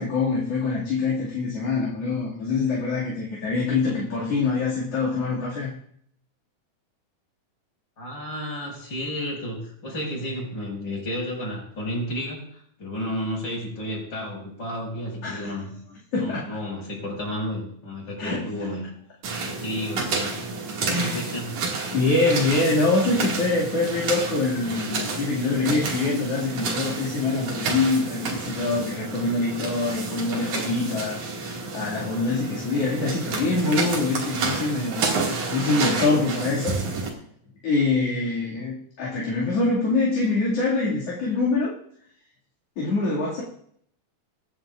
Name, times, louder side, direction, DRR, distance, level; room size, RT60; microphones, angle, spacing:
voice 1, 0.0-5.7 15.2-15.5 16.1-16.5 18.2-18.5 20.8-21.3 21.9-35.2 35.4-36.8 37.6-41.7 42.8-43.4, left 3 dB, 55° left, -5 dB, 3.4 m, -24 dB
voice 2, 8.0-15.7 16.1-18.9 19.4-20.3 20.8-21.5, equal, 35° left, -2 dB, 6.7 m, -32 dB
sound 1, 19.2-37.1, right 4 dB, 85° right, 3.7 m, -30 dB
23.5 x 10.5 x 2.5 m, 0.66 s
omnidirectional pair, 3.3 m